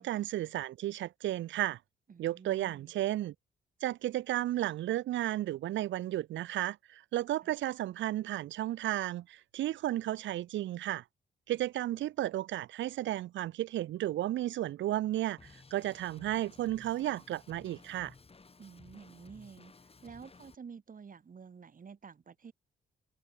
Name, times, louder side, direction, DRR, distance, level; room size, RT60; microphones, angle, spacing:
voice 1, 0.0-1.8 2.2-3.3 3.8-11.0 11.5-18.1, right 14 dB, 75° right, 0.8 m, -33 dB
voice 2, 2.1-2.9 7.4-7.5 18.6-19.7 20.0-22.5, right 6 dB, 45° right, 2.1 m, -50 dB
Drum kit, 15.4-20.5, left 4 dB, 30° left, 2.5 m, -56 dB
supercardioid pair, 65°, 19 cm